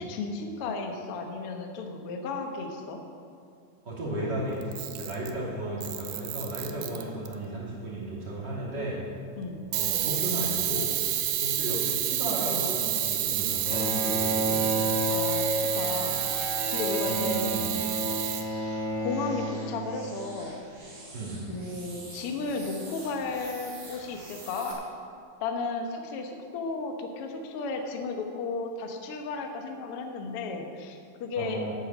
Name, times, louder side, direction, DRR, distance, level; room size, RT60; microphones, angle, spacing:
voice 1, 0.0-3.0 6.9-7.1 9.4-9.6 15.1-16.2 16.7-17.4 19.0-20.6 21.5-24.9 25.4-31.7, left 4 dB, 75° left, 4 dB, 1.3 m, -34 dB
voice 2, 3.8-9.0 9.7-10.9 11.4-14.6 17.0-17.7 21.1-21.5 31.4-31.7, right 1 dB, 30° right, -6 dB, 3.0 m, -34 dB
Camera, 4.6-5.4 5.8-7.3 9.7-18.5, right 12 dB, 85° right, 2.5 m, -29 dB
sound 1, 13.3-24.7, right 2 dB, 50° right, 3.4 m, -49 dB
Bowed string instrument, 13.6-20.4, right 1 dB, 55° left, 3.4 m, -31 dB
10.5 x 8.9 x 7.1 m, 2.3 s
omnidirectional pair, 4.2 m